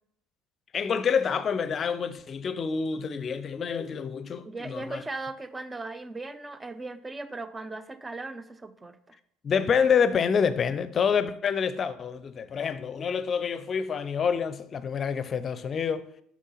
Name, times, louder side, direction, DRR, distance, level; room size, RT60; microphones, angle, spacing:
voice 1, 0.7-5.0 9.4-16.1, left 6 dB, 40° left, 0.6 m, -27 dB
voice 2, 4.4-9.2, right 2 dB, 15° right, 0.6 m, -38 dB
7.3 x 6.3 x 4.1 m
figure-of-eight pair, 60°, 0 cm